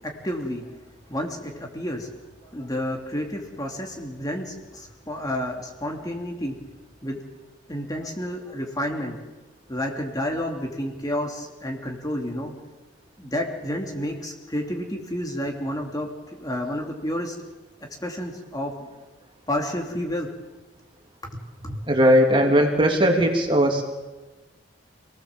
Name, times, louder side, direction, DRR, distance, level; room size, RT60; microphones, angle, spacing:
voice 1, 0.0-0.8 1.1-2.1 2.5-6.5 7.0-7.2 7.7-9.2 9.7-12.5 13.2-17.4 18.0-18.9 19.5-20.3 21.3-21.8, left 1 dB, 20° left, 1 dB, 3.0 m, -30 dB
voice 2, 21.9-23.8, equal, 30° right, 1 dB, 3.4 m, -18 dB
27.5 x 19.0 x 7.5 m, 1.2 s
head